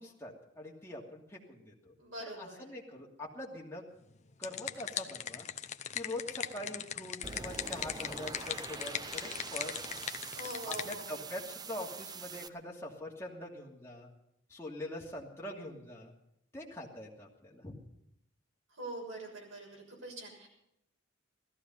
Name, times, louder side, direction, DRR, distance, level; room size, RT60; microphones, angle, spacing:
voice 1, 0.0-1.9 2.2-3.8 4.4-5.5 5.9-10.1 10.7-14.1 14.5-16.1 16.5-17.8, left 1 dB, 15° left, -3 dB, 2.6 m, -44 dB
voice 2, 2.0-2.6 10.3-11.1 18.8-20.5, right 2 dB, 80° right, -1 dB, 6.7 m, -43 dB
sound 1, 4.1-11.0, left 8 dB, 35° left, 0.7 m, -39 dB
sound 2, 7.2-12.5, right 4 dB, 20° right, 0.5 m, -44 dB
17.0 x 14.0 x 5.5 m, 0.79 s
head